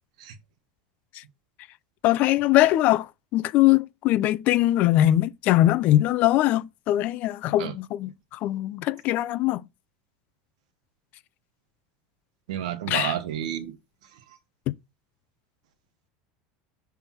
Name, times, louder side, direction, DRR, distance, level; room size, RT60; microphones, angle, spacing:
voice 1, 2.0-9.6 12.9-13.1, left 14 dB, 50° left, 0.5 m, -22 dB
voice 2, 12.5-13.7, right 10 dB, 85° right, 1.1 m, -30 dB
6.1 x 3.4 x 5.6 m
supercardioid pair, 135°, 4 cm